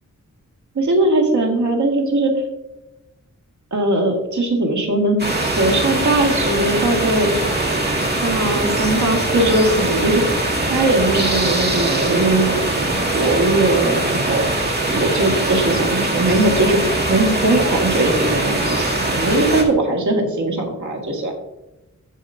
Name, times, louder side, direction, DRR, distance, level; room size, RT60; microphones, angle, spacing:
voice 1, 0.8-2.4 3.7-5.2 5.6-7.3 8.2-14.5 14.9-21.3, right 2 dB, 70° right, 1 dB, 2.0 m, -19 dB
sound 1, 5.2-19.6, right 2 dB, 35° right, 1.9 m, -21 dB
15.0 x 5.1 x 2.7 m, 0.96 s
wide cardioid pair, 105°, 31 cm